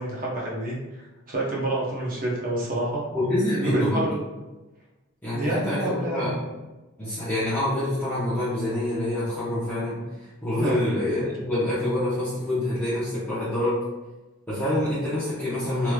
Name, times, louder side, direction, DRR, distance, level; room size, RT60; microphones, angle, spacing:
voice 1, 0.0-3.0 3.7-4.3 5.3-6.4 10.6-10.8, right 1 dB, 40° right, -4 dB, 0.8 m, -28 dB
voice 2, 3.1-4.1 5.2-6.4 7.0-13.8 14.5-15.9, left 1 dB, 10° left, -14 dB, 0.9 m, -26 dB
3.3 x 3.1 x 2.3 m, 1.1 s
head